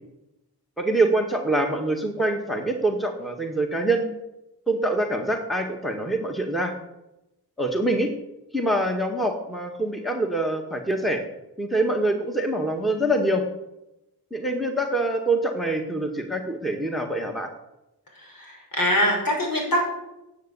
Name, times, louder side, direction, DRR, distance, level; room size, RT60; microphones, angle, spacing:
voice 1, 0.8-4.1 4.7-6.7 7.6-8.1 8.5-11.2 11.6-13.4 14.3-17.5, right 1 dB, ahead, 3 dB, 1.6 m, -25 dB
voice 2, 18.1-19.9, equal, 60° left, 0 dB, 5.7 m, -24 dB
10.0 x 7.8 x 8.4 m, 0.93 s
cardioid pair, 60°, 39 cm